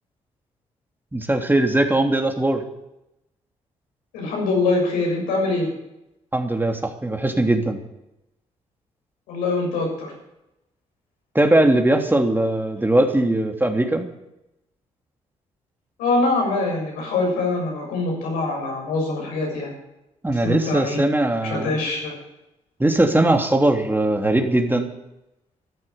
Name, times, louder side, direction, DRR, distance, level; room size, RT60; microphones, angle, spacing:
voice 1, 1.1-2.6 6.3-7.8 11.3-14.1 20.2-21.8 22.8-24.9, right 1 dB, 15° right, 4 dB, 2.9 m, -20 dB
voice 2, 4.1-5.7 9.3-10.1 16.0-19.7 20.4-21.0 21.4-22.1, left 3 dB, 80° left, 0 dB, 6.9 m, -23 dB
14.5 x 12.0 x 8.0 m, 0.90 s
hypercardioid pair, 45°, 15 cm